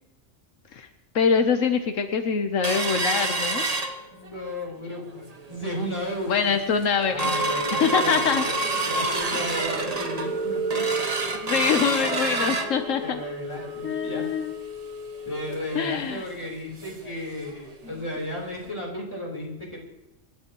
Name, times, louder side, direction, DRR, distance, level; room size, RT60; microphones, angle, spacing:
voice 1, 1.1-3.6 6.3-8.6 11.3-13.2 13.8-14.6 15.7-16.2, left 6 dB, 80° left, 7 dB, 1.3 m, -24 dB
sound 1, 2.6-4.5 4.9-5.0 5.3-5.7 6.2-6.3 6.6-17.1 17.5-17.6 17.9-18.1 18.6-18.7, right 2 dB, 30° right, 1.1 m, -28 dB
voice 2, 4.1-6.6 7.1-10.8 12.6-14.3 15.3-19.8, equal, 20° left, -2 dB, 3.8 m, -34 dB
26.5 x 11.5 x 3.0 m, 0.97 s
omnidirectional pair, 1.3 m